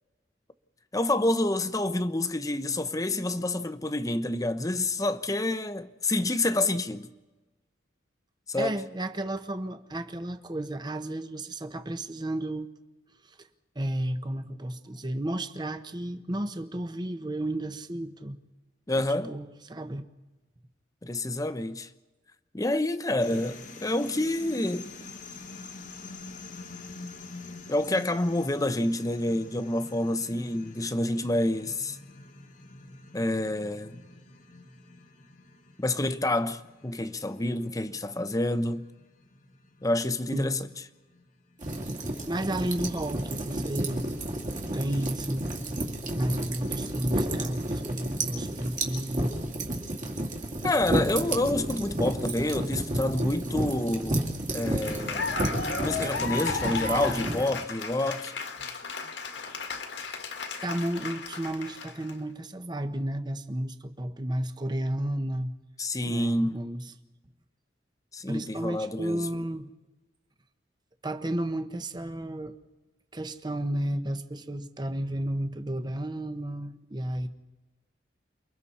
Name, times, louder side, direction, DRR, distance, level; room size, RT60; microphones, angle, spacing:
voice 1, 0.9-7.1 8.5-8.8 18.9-19.3 21.0-21.9 22.5-24.9 27.7-32.0 33.1-34.0 35.8-38.8 39.8-40.6 50.6-55.3 55.8-58.3 65.8-66.6 68.1-69.3, left 1 dB, 20° left, 0.7 m, -28 dB
voice 2, 8.6-12.7 13.2-13.5 13.7-18.4 18.9-20.0 23.3-23.4 40.3-40.6 42.3-44.1 44.7-49.3 60.6-65.5 66.0-66.9 68.3-69.7 71.0-72.5 73.1-77.3, right 1 dB, 25° right, 0.9 m, -32 dB
sound 1, 23.2-41.7, left 3 dB, 45° left, 1.3 m, -47 dB
sound 2, 41.6-57.5, right 1 dB, 40° right, 2.4 m, -31 dB
Cheering / Applause, 54.6-62.1, left 4 dB, 75° left, 1.8 m, -34 dB
28.5 x 22.5 x 4.3 m
head